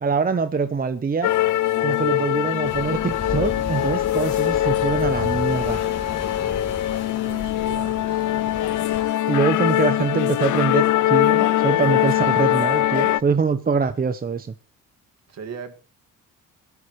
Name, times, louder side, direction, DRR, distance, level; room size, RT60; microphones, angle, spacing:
voice 1, 0.0-1.3 1.8-5.8 9.3-14.5, right 5 dB, 25° right, 0.8 m, -24 dB
sound 1, 1.2-13.2, left 14 dB, 65° left, 0.6 m, -22 dB
sound 2, 2.6-9.0, left 4 dB, 50° left, 3.1 m, -34 dB
Wind instrument woodwind instrument, 7.2-12.1, left 3 dB, 25° left, 4.4 m, -49 dB
voice 2, 7.2-8.3 15.3-15.7, right 6 dB, 55° right, 2.1 m, -38 dB
20.5 x 13.0 x 3.2 m
cardioid pair, 125°, 32 cm